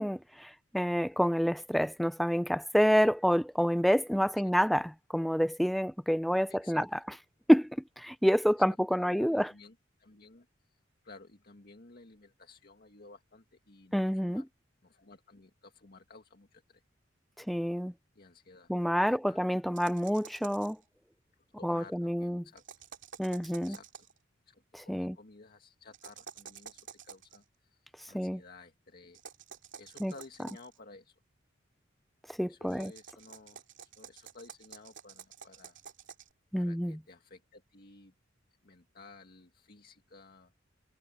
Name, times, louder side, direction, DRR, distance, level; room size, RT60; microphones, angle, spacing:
voice 1, 0.0-4.8 5.1-7.0 7.5-9.5 13.9-14.4 17.4-17.9 18.7-20.8 21.6-22.4 23.2-23.8 24.7-25.2 28.1-28.4 30.0-30.1 32.4-32.9 36.5-37.0, equal, ahead, 0.4 m, -28 dB
voice 2, 6.5-6.9 8.5-8.6 8.9-10.5 11.0-14.4 14.8-16.8 18.2-18.7 19.1-19.5 20.0-20.1 21.3-22.6 23.7-23.9 24.5-29.2 29.8-31.2 32.5-33.6 34.0-35.8 36.6-38.1 38.6-40.5, left 3 dB, 50° left, 1.8 m, -54 dB
sound 1, 19.8-20.8 22.6-24.2 25.9-27.4 29.1-30.8 32.7-36.3, right 7 dB, 70° right, 2.6 m, -50 dB
head